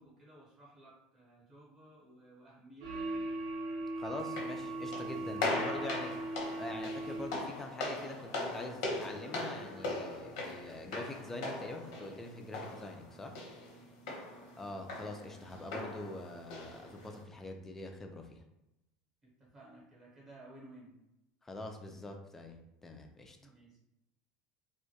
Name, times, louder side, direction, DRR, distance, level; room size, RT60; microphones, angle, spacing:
voice 1, 0.0-3.3 13.8-14.6 19.2-21.0 23.4-23.8, right 1 dB, 25° right, -5 dB, 0.8 m, -57 dB
sound 1, 2.8-7.6, right 2 dB, 90° right, 0.6 m, -39 dB
voice 2, 4.0-6.1 6.6-13.4 14.6-18.4 21.4-22.6 22.8-23.4, left 2 dB, 10° left, 3 dB, 0.3 m, -44 dB
sound 2, 4.2-17.2, left 2 dB, 85° left, 0.8 m, -40 dB
2.2 x 2.1 x 2.7 m, 0.88 s
supercardioid pair, 140°, 3 cm